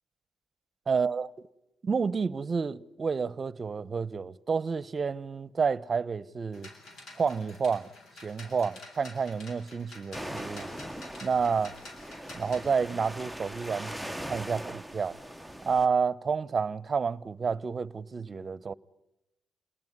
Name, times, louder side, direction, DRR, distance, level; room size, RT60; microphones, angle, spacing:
voice 1, 0.9-1.3 1.8-6.7 7.2-7.9 8.2-10.7 11.2-11.7 12.3-15.2 15.6-18.7, right 5 dB, 40° right, 0.9 m, -30 dB
sound 1, 6.5-12.7, left 2 dB, 65° left, 7.9 m, -49 dB
sound 2, 10.1-15.9, equal, ahead, 0.9 m, -40 dB
28.5 x 20.5 x 9.7 m
cardioid pair, 90°, 0 cm